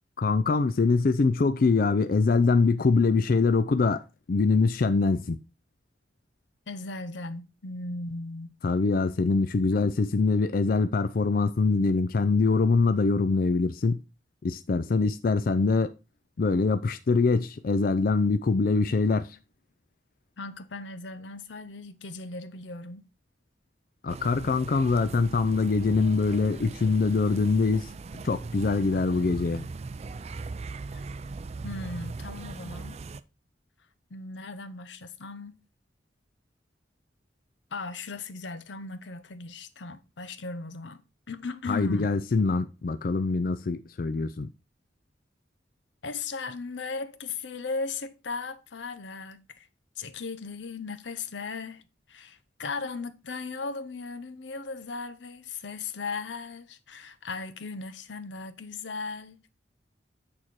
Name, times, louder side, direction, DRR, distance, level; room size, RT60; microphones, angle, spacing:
voice 1, 0.2-4.0 4.3-5.4 8.6-14.0 14.4-15.9 16.4-19.4 24.0-27.9 28.2-29.7 41.7-44.5, left 4 dB, 50° left, 0.4 m, -24 dB
voice 2, 6.7-8.6 9.7-9.8 20.4-23.0 30.9-31.0 31.6-33.0 34.1-35.6 37.7-41.0 41.3-42.1 46.0-49.7 50.0-51.8 52.1-59.5, left 3 dB, 85° left, 0.8 m, -37 dB
sound 1, 24.1-33.2, right 3 dB, 35° right, 0.4 m, -39 dB
8.7 x 4.3 x 4.6 m
head